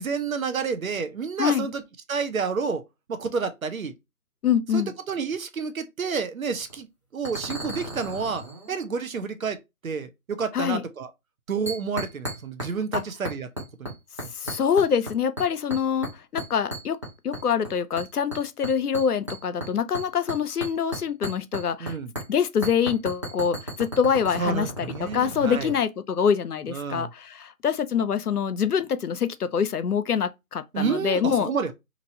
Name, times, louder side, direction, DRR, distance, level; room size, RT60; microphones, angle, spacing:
voice 1, 0.0-1.8 2.1-2.8 3.1-3.9 4.7-4.8 5.1-6.9 7.1-9.6 9.8-11.1 11.5-13.5 13.8-13.9 14.2-14.3 21.8-22.1 24.4-25.7 26.7-27.1 30.7-31.7, right 5 dB, 65° right, 0.7 m, -29 dB
voice 2, 1.4-1.7 4.4-4.9 10.5-10.9 12.9-13.0 14.4-17.0 17.2-22.0 22.3-31.5, left 7 dB, 90° left, 0.6 m, -25 dB
sound 1, 6.5-6.8 7.2-8.9 11.7-12.7 12.9-13.9 14.2-15.1 15.4-16.1 16.4-17.7 18.0-21.9 22.2-22.3 22.6-25.7, right 1 dB, 20° right, 0.6 m, -34 dB
2.9 x 2.6 x 2.7 m
figure-of-eight pair, 150°, 44 cm